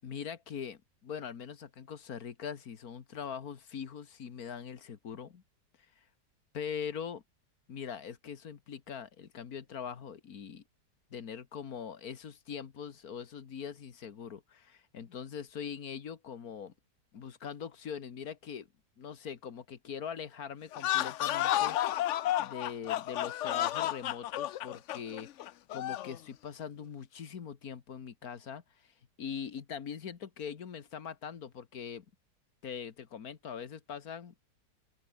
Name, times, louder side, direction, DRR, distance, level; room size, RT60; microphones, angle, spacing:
voice 1, 0.0-5.4 6.5-7.2 7.7-10.6 11.1-16.7 17.1-18.7 19.0-25.3 25.7-32.1 32.6-34.3, left 7 dB, 55° left, 2.0 m, -42 dB
sound 1, 20.7-26.2, left 13 dB, 85° left, 0.6 m, -32 dB
open air
omnidirectional pair, 1.9 m